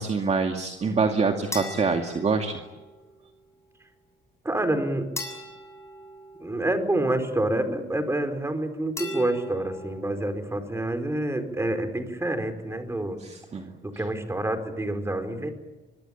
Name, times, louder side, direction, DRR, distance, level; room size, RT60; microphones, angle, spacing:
voice 1, 0.0-2.6 13.2-13.7, right 4 dB, 35° right, 4 dB, 2.3 m, -25 dB
sound 1, 1.5-3.0 5.2-7.0 9.0-10.1, left 1 dB, 15° left, 7.3 m, -38 dB
voice 2, 4.4-5.1 6.4-13.2 13.8-15.5, right 1 dB, 15° right, 7 dB, 4.4 m, -27 dB
24.5 x 22.5 x 8.8 m, 1.1 s
cardioid pair, 115°, 20 cm